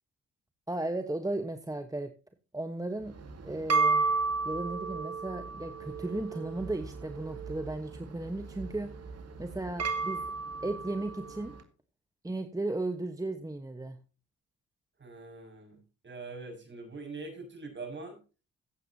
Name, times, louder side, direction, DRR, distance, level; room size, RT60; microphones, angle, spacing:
voice 1, 0.7-2.1 2.5-3.2 3.4-4.1 4.4-8.9 9.4-10.3 10.6-11.5 12.2-14.0, right 2 dB, 10° right, 7 dB, 1.2 m, -35 dB
Yoga Gong, 3.1-11.6, right 4 dB, 55° right, 2.2 m, -33 dB
voice 2, 15.0-18.2, right 3 dB, 40° right, 4 dB, 6.3 m, -43 dB
15.5 x 8.4 x 2.8 m, 0.33 s
cardioid pair, 75°, 30 cm